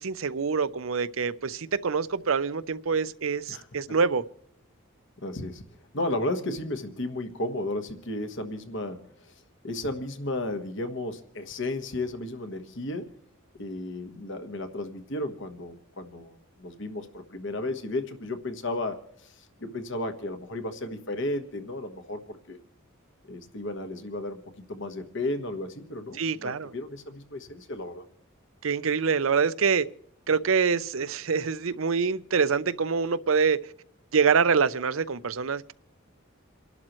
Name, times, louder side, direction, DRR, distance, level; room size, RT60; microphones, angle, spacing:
voice 1, 0.0-4.2 26.2-26.7 28.6-29.9 30.3-33.6 34.1-35.7, right 5 dB, 75° right, 0.7 m, -25 dB
voice 2, 3.5-4.0 5.2-5.6 5.9-9.3 9.6-13.1 13.6-22.6 23.3-28.0, left 2 dB, 60° left, 1.4 m, -34 dB
28.5 x 12.0 x 3.1 m
head